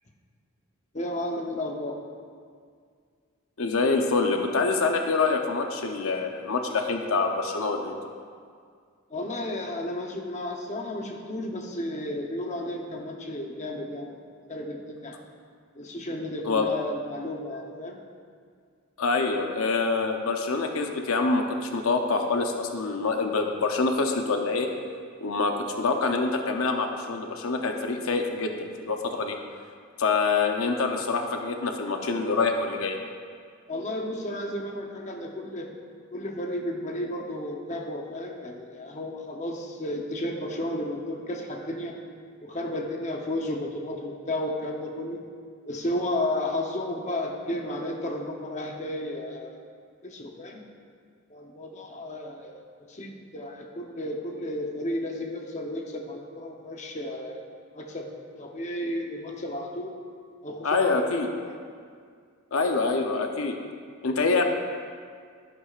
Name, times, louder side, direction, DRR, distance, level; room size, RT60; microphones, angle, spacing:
voice 1, 0.9-2.0 9.1-14.2 14.5-15.2 15.7-18.0 33.7-35.7 36.1-41.9 42.4-45.2 45.7-49.5 50.0-50.6 51.3-52.6 52.9-57.4 57.7-58.1 58.4-59.9 60.4-61.6, left 1 dB, 35° left, 1 dB, 0.8 m, -33 dB
voice 2, 3.6-8.1 16.4-16.7 19.0-24.7 25.2-29.4 30.0-33.0 60.6-61.3 62.5-63.5 64.0-64.4, left 4 dB, 75° left, 4 dB, 0.7 m, -26 dB
11.5 x 11.0 x 2.5 m, 2.1 s
head